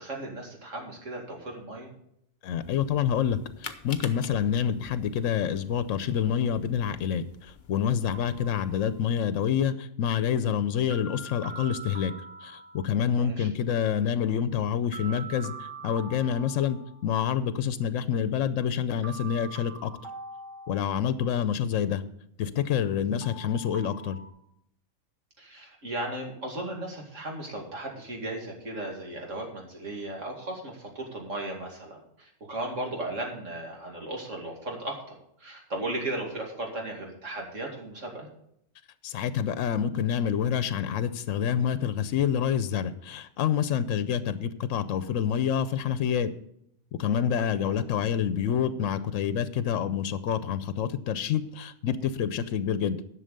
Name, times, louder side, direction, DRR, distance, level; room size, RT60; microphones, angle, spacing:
voice 1, 0.0-1.9 13.1-13.5 21.5-21.6 25.4-38.3 47.4-47.8, right 1 dB, 70° right, 0 dB, 2.7 m, -36 dB
voice 2, 2.4-12.1 12.4-19.9 20.7-22.0 22.4-24.2 39.0-46.3 47.0-53.0, left 8 dB, 80° left, 13 dB, 1.0 m, -27 dB
sound 1, 2.6-9.1, left 6 dB, 45° left, 0.8 m, -47 dB
sound 2, 8.1-9.3 10.9-13.2 14.9-17.2 19.0-21.4 23.2-24.3, right 3 dB, 40° right, 1.7 m, -44 dB
11.0 x 6.4 x 6.6 m, 0.73 s
omnidirectional pair, 1.3 m